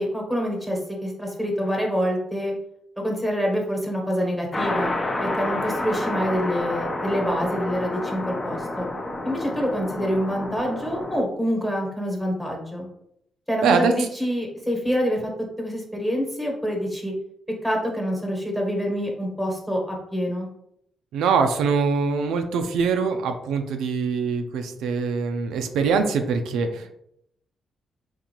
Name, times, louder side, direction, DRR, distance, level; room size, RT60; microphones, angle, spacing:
voice 1, 0.0-2.5 3.0-4.9 5.2-8.9 9.2-12.9 13.5-15.3 15.6-17.1 17.6-20.5, equal, 5° left, 0 dB, 1.1 m, -26 dB
sound 1, 4.5-11.2, left 2 dB, 30° left, 0.6 m, -29 dB
voice 2, 13.6-13.9 21.1-27.0, right 5 dB, 90° right, 6 dB, 0.3 m, -23 dB
3.8 x 2.5 x 2.9 m, 0.74 s
cardioid pair, 90°, 0 cm